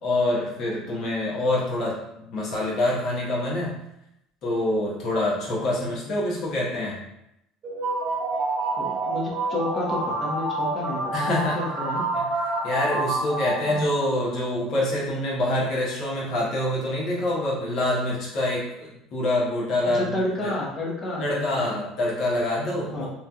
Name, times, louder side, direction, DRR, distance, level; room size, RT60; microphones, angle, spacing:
voice 1, 0.0-2.0 2.3-3.8 4.4-7.0 11.1-11.6 12.1-12.3 12.6-20.1 20.4-20.5 21.2-23.1, left 1 dB, 55° left, -4 dB, 1.2 m, -26 dB
voice 2, 5.6-6.2 8.8-12.0 13.7-13.8 19.9-21.8 22.9-23.1, left 1 dB, 30° left, -3 dB, 1.0 m, -31 dB
sound 1, 7.6-14.4, right 2 dB, 45° right, 0.7 m, -28 dB
3.1 x 2.5 x 2.3 m, 0.82 s
supercardioid pair, 105°, 0 cm